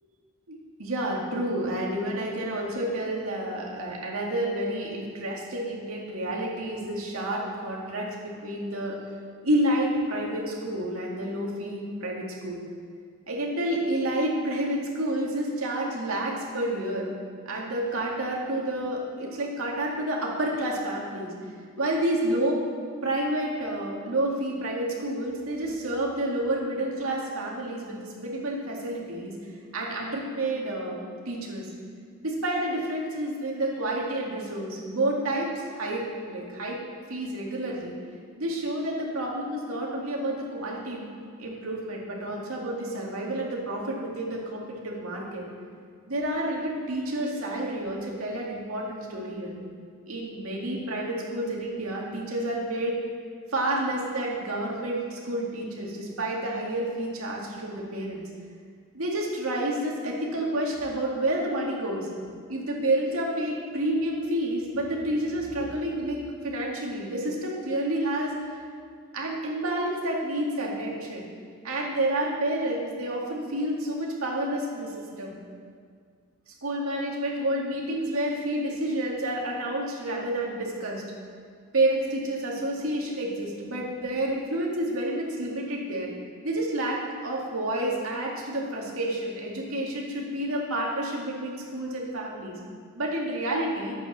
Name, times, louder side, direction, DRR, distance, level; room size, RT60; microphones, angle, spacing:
voice 1, 0.5-9.0 9.4-12.6 13.3-17.1 17.5-21.3 21.8-22.6 23.0-29.3 29.7-31.0 31.3-31.7 32.2-36.8 37.1-38.0 38.4-41.1 41.4-45.4 46.1-49.5 50.1-53.0 53.5-58.2 58.9-62.1 62.5-68.3 69.1-71.3 71.6-75.4 76.6-81.0 81.7-86.1 86.4-92.6 93.0-93.9, right 1 dB, 85° right, -2 dB, 2.3 m, -29 dB
10.5 x 8.6 x 6.4 m, 2.1 s
head